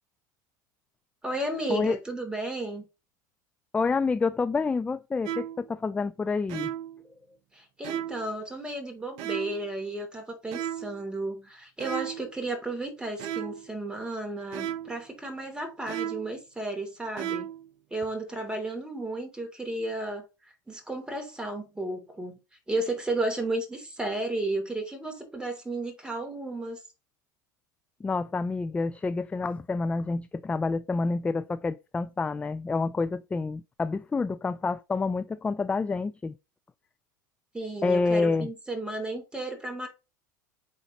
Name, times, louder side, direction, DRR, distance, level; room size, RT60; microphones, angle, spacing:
voice 1, 1.2-2.8 7.5-17.5 17.9-22.4 22.7-26.8 37.5-39.9, right 2 dB, 10° right, 2.9 m, -33 dB
voice 2, 3.7-6.7 28.0-36.3 37.8-38.5, left 4 dB, 10° left, 0.3 m, -28 dB
sound 1, 5.3-5.7 6.5-7.0 7.8-8.3 9.2-9.7 10.5-11.0 11.8-12.3 13.2-13.7 14.5-15.0 15.9-16.4 17.2-17.7, right 11 dB, 55° right, 0.7 m, -34 dB
8.8 x 3.8 x 3.0 m
hypercardioid pair, 80°, 10 cm